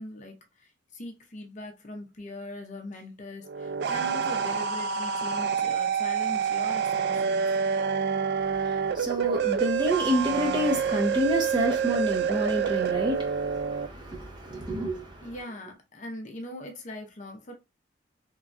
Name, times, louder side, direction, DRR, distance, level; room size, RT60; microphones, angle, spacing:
voice 1, 0.0-7.5 15.2-17.5, left 1 dB, 40° left, 0.6 m, -41 dB
sound 1, 3.4-13.9, right 6 dB, 60° right, 0.3 m, -27 dB
voice 2, 8.5-15.3, equal, 25° right, 0.7 m, -29 dB
3.0 x 2.3 x 2.5 m
head